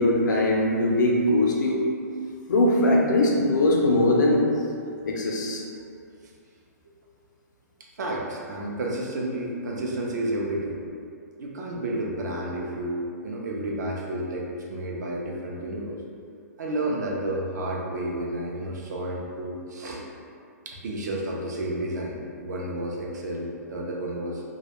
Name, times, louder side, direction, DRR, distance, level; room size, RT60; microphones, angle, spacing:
voice 1, 0.0-1.8 2.5-4.5 5.1-5.6, left 1 dB, 90° left, -1 dB, 0.5 m, -21 dB
voice 2, 8.0-10.8 11.4-16.0 16.6-20.0 20.7-24.4, right 1 dB, 70° right, -2 dB, 0.5 m, -31 dB
2.3 x 2.0 x 2.9 m, 2.4 s
hypercardioid pair, 160°, 10 cm